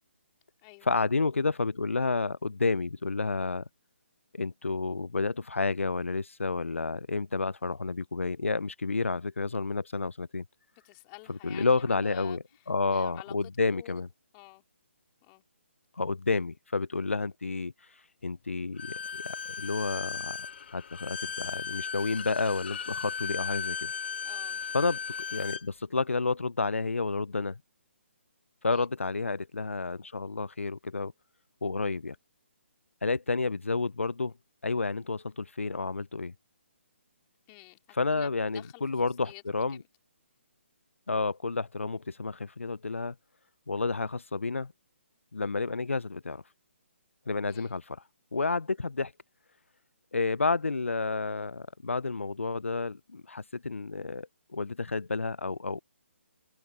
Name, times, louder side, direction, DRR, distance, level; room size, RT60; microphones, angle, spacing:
voice 1, 0.8-3.6 4.3-10.4 11.4-12.4 12.7-14.1 16.0-20.4 20.7-23.9 24.7-25.0 25.3-27.6 28.6-31.1 31.6-32.2 33.0-34.3 34.6-36.3 37.9-39.8 41.1-43.1 43.7-44.7 45.3-46.4 47.3-48.0 48.3-49.1 50.1-55.8, left 3 dB, 80° left, 0.7 m, -30 dB
voice 2, 10.8-13.4 13.7-14.0 14.3-14.6 15.2-15.4 24.2-24.6 28.7-28.9 37.5-38.8 39.2-39.4 39.7-39.8 47.5-47.8, left 34 dB, 25° left, 4.0 m, -50 dB
Bowed string instrument, 18.8-25.7, left 6 dB, 55° left, 0.8 m, -36 dB
open air
figure-of-eight pair, 140°, 7 cm